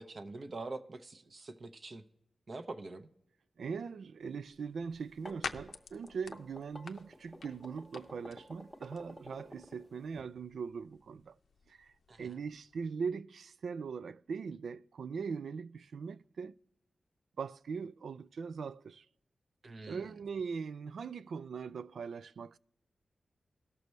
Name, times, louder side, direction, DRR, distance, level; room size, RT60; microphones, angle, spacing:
voice 1, 0.0-2.0 2.5-3.1 12.1-12.3 19.6-20.1, right 3 dB, 40° right, 0.7 m, -44 dB
voice 2, 3.6-11.4 11.7-11.9 12.2-16.5 17.4-19.0 19.9-22.6, right 5 dB, 80° right, 0.3 m, -41 dB
sound 1, 4.2-12.9, left 5 dB, 75° left, 0.6 m, -50 dB
sound 2, 5.0-10.2, equal, ahead, 1.0 m, -51 dB
18.5 x 6.7 x 3.1 m
wide cardioid pair, 170°, 0 cm